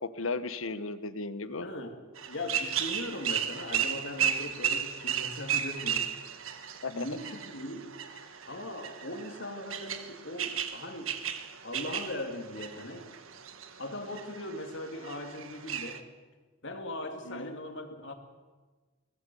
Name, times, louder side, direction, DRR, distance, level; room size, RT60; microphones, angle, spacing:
voice 1, 0.0-1.7 6.8-7.1 17.3-17.5, left 3 dB, 80° left, 12 dB, 1.2 m, -35 dB
voice 2, 1.6-2.0 2.3-6.1 6.9-7.9 8.5-11.2 11.6-13.1 13.8-16.1 16.6-18.1, left 1 dB, 60° left, 5 dB, 2.6 m, -39 dB
sound 1, 2.2-16.0, right 8 dB, 80° right, 1.5 m, -35 dB
23.5 x 19.5 x 7.1 m, 1.3 s
head